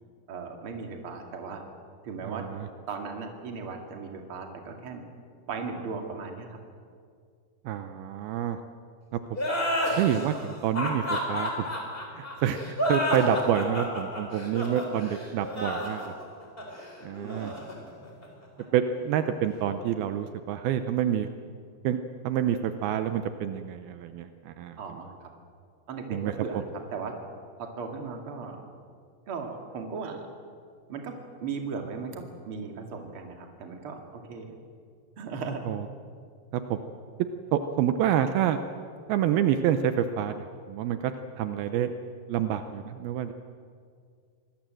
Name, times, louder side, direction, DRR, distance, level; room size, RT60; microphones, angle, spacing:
voice 1, 0.3-1.6 2.0-2.4 2.9-5.0 5.5-6.6 17.2-17.6 24.8-25.3 25.9-27.1 27.6-28.6 29.3-30.3 30.9-34.5 35.2-35.6, right 5 dB, 40° right, 3 dB, 2.6 m, -37 dB
voice 2, 2.2-2.7 7.7-8.6 9.1-9.2 10.0-11.7 12.1-16.1 17.0-17.5 18.7-21.3 21.8-22.0 22.2-24.8 26.1-26.3 35.7-35.8 36.5-36.8 37.5-38.6 39.1-41.9 42.3-43.3, right 10 dB, 80° right, 9 dB, 2.6 m, -28 dB
sound 1, 9.3-18.6, equal, 15° left, 4.1 m, -31 dB
25.0 x 20.0 x 7.7 m, 2.2 s
omnidirectional pair, 4.5 m